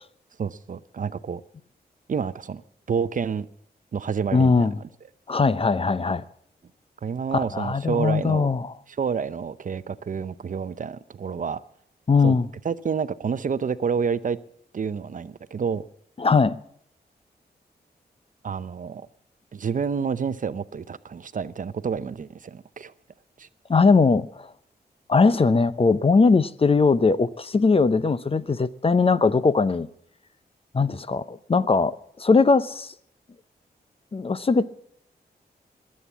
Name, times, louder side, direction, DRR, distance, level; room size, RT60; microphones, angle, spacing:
voice 1, 0.4-1.4 2.1-2.6 2.9-3.5 3.9-4.7 7.0-8.5 8.9-11.6 12.2-12.4 12.6-14.4 14.7-15.8 18.4-19.1 19.5-22.9 23.4-23.5, right 6 dB, 50° right, 0.7 m, -29 dB
voice 2, 4.3-4.8 5.3-6.2 7.3-8.7 12.1-12.5 16.2-16.6 23.7-24.5 25.1-29.9 30.7-32.9 34.1-34.6, left 4 dB, 35° left, 0.7 m, -20 dB
21.5 x 8.6 x 7.2 m
cardioid pair, 70°, 17 cm